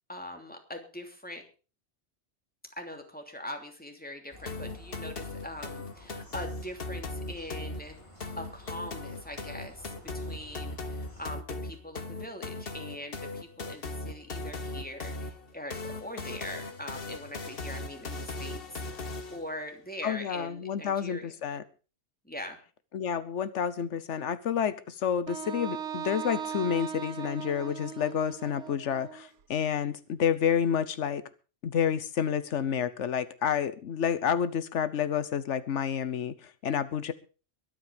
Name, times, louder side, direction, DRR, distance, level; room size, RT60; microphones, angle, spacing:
voice 1, 0.1-1.4 2.8-8.0 8.4-18.8 19.3-21.3 22.2-22.6, left 1 dB, 5° left, 4 dB, 3.0 m, -42 dB
sound 1, 4.3-11.3, left 2 dB, 25° left, 4.6 m, -51 dB
sound 2, 4.5-19.5, left 2 dB, 55° left, 1.5 m, -38 dB
voice 2, 20.0-21.6 22.9-31.2 31.6-37.1, left 8 dB, 85° left, 15 dB, 1.2 m, -29 dB
Wind instrument woodwind instrument, 25.3-29.3, right 8 dB, 85° right, 1.3 m, -38 dB
22.5 x 8.8 x 5.1 m, 0.36 s
omnidirectional pair, 1.2 m